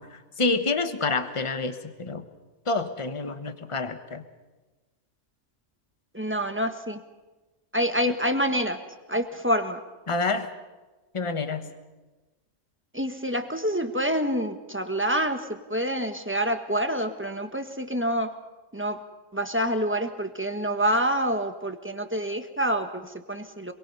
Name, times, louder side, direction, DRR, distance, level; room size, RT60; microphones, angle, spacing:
voice 1, 0.0-2.2 2.7-4.2 8.1-8.2 10.1-10.5 11.1-11.7, left 3 dB, 25° left, 9 dB, 1.2 m, -28 dB
voice 2, 6.1-7.0 7.7-8.8 9.1-9.8 12.9-18.3 18.7-19.0 19.3-23.7, equal, 10° right, 6 dB, 1.3 m, -27 dB
26.5 x 22.5 x 5.5 m, 1.2 s
omnidirectional pair, 1.3 m